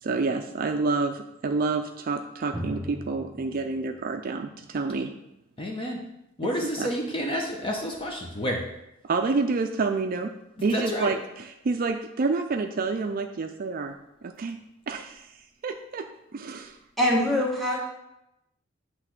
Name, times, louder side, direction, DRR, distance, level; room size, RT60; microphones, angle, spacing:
voice 1, 0.0-5.1 6.8-6.9 9.0-10.4 10.6-14.0 14.2-14.6 14.9-15.3 15.6-16.8, right 4 dB, 45° right, 6 dB, 0.4 m, -28 dB
Drum, 2.5-6.1, equal, 15° right, 1.1 m, -40 dB
voice 2, 5.6-6.0 6.4-8.6 10.7-11.1, equal, 25° left, 0 dB, 0.8 m, -29 dB
voice 3, 17.0-17.8, left 1 dB, ahead, -4 dB, 1.8 m, -23 dB
8.1 x 3.2 x 5.9 m, 0.87 s
head